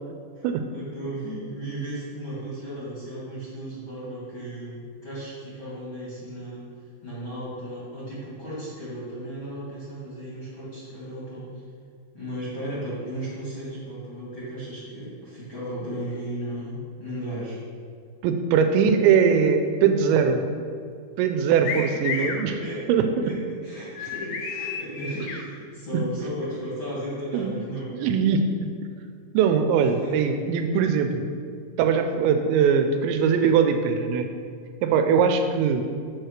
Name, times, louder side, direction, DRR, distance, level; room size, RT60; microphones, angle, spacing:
voice 1, 0.3-11.5 12.1-17.6 21.6-22.8 23.2-27.9 30.0-30.2, right 1 dB, 55° left, -8 dB, 1.4 m, -35 dB
voice 2, 18.2-20.4 21.2-22.5 22.9-23.3 25.9-26.0 27.3-27.6 27.9-28.7 29.3-31.3 31.8-34.3 34.8-35.8, right 6 dB, 85° right, 6 dB, 2.8 m, -21 dB
sound 1, 21.6-22.4 23.9-25.4, left 6 dB, 80° left, 3.0 m, -31 dB
8.1 x 4.6 x 6.4 m, 2.2 s
omnidirectional pair, 5.4 m